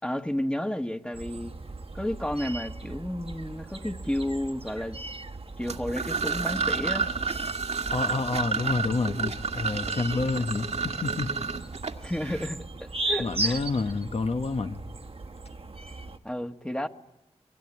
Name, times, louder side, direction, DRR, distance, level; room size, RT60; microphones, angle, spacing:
voice 1, 0.0-1.5 1.9-5.0 5.6-7.1 12.0-13.6 16.2-16.9, left 1 dB, 10° left, 1.5 m, -32 dB
sound 1, 1.1-16.2, right 2 dB, 55° right, 1.5 m, -38 dB
sound 2, 5.6-12.5, right 5 dB, 75° right, 1.9 m, -30 dB
voice 2, 7.9-11.3 13.2-14.8, left 3 dB, 65° left, 1.3 m, -29 dB
25.5 x 22.0 x 9.9 m
cardioid pair, 55°, 11 cm